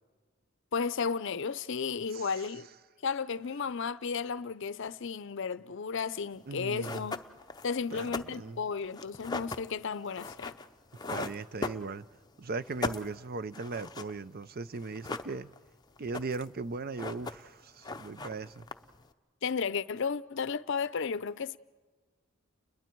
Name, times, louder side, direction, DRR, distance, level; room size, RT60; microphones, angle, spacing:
voice 1, 0.7-2.7 3.0-7.2 7.6-10.6 19.4-21.6, left 5 dB, 60° left, 0.6 m, -33 dB
sound 1, 6.4-6.5 6.8-12.3 12.6-14.2 14.4-14.5 14.8-15.7 16.0-16.6 16.8-17.6 17.8-19.1, left 3 dB, 20° left, 0.6 m, -39 dB
voice 2, 6.5-7.1 7.9-8.6 11.1-12.0 12.4-15.5 16.0-18.7, right 3 dB, 45° right, 0.5 m, -38 dB
30.0 x 21.5 x 4.6 m
head